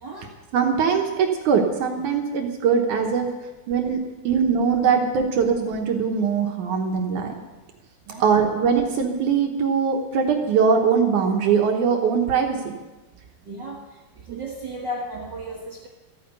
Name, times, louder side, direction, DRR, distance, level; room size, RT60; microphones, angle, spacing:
voice 1, 0.5-3.3 3.7-7.4 8.2-12.7 14.3-14.4, right 6 dB, 65° right, 2 dB, 2.1 m, -21 dB
voice 2, 13.4-13.8 14.3-15.9, right 1 dB, 85° right, -2 dB, 0.9 m, -34 dB
14.5 x 9.2 x 8.1 m, 1.2 s
omnidirectional pair, 4.4 m